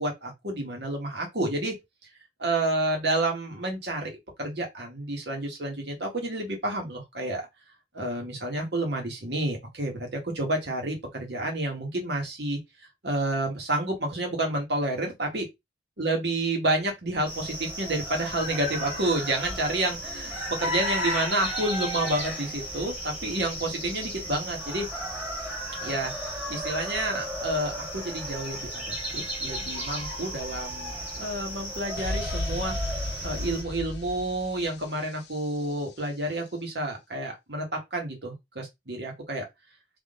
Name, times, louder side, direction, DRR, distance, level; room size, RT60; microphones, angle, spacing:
voice 1, 0.0-1.7 2.4-4.1 4.4-7.5 7.9-12.6 13.0-15.5 16.0-24.9 25.8-32.7 33.2-39.5, right 1 dB, 75° right, 1.7 m, -29 dB
sound 1, 17.3-33.6, equal, 10° right, 1.9 m, -34 dB
sound 2, 32.0-35.7, left 2 dB, 80° left, 0.8 m, -34 dB
3.8 x 3.0 x 3.8 m
head